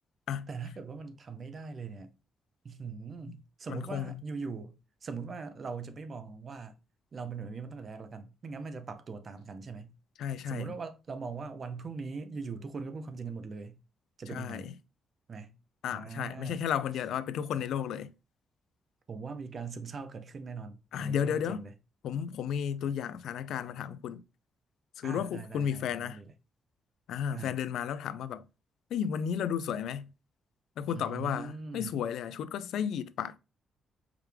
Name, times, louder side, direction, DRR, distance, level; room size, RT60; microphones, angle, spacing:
voice 1, 0.5-2.1 2.6-6.8 7.1-9.9 10.5-13.8 14.2-14.7 15.3-15.6 15.9-16.6 19.1-21.7 25.0-26.3 27.3-27.6 30.9-32.0, right 5 dB, 35° right, 0.5 m, -41 dB
voice 2, 3.7-4.2 10.2-10.7 14.3-14.7 15.8-18.1 20.9-21.6 22.0-24.2 25.0-26.2 27.1-28.5 28.9-30.1 30.8-33.4, left 8 dB, 85° left, 0.3 m, -33 dB
4.8 x 3.3 x 3.4 m
wide cardioid pair, 180°, 0 cm